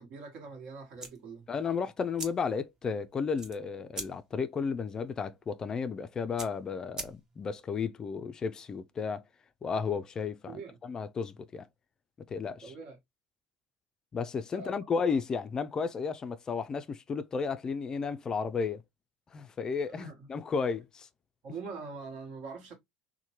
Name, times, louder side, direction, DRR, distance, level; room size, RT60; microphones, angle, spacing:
voice 1, 0.0-1.5 10.4-10.8 12.6-13.0 14.5-14.7 20.0-20.3 21.4-22.7, right 4 dB, 60° right, 1.1 m, -43 dB
sound 1, 0.9-7.6, right 3 dB, 30° right, 0.8 m, -46 dB
voice 2, 1.5-9.2 9.6-11.7 12.3-12.7 14.1-18.8 19.3-21.1, left 5 dB, 30° left, 0.3 m, -33 dB
2.8 x 2.1 x 2.9 m
hypercardioid pair, 75°, 2 cm